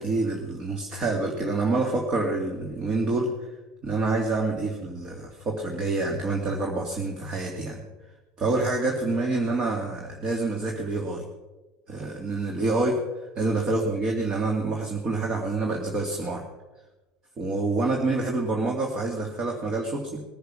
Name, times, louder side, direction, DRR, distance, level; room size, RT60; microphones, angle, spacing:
voice 1, 0.0-3.5 3.8-7.8 8.4-11.2 11.9-13.0 13.4-16.4 17.4-20.2, right 3 dB, 30° right, 1 dB, 2.3 m, -27 dB
20.0 x 10.0 x 6.3 m, 1.1 s
cardioid pair, 145°, 2 cm